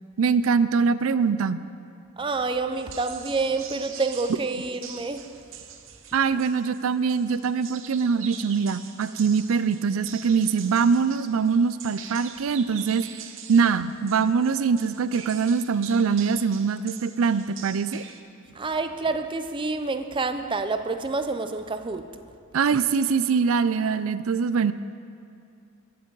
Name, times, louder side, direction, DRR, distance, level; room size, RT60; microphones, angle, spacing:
voice 1, 0.2-1.6 6.1-13.1 13.5-18.0 22.5-24.7, right 5 dB, 85° right, 0.5 m, -23 dB
voice 2, 2.2-5.4 18.5-22.2, right 3 dB, 25° right, 0.5 m, -28 dB
sound 1, 2.8-18.2, right 8 dB, 65° right, 0.8 m, -43 dB
23.0 x 7.8 x 3.9 m
head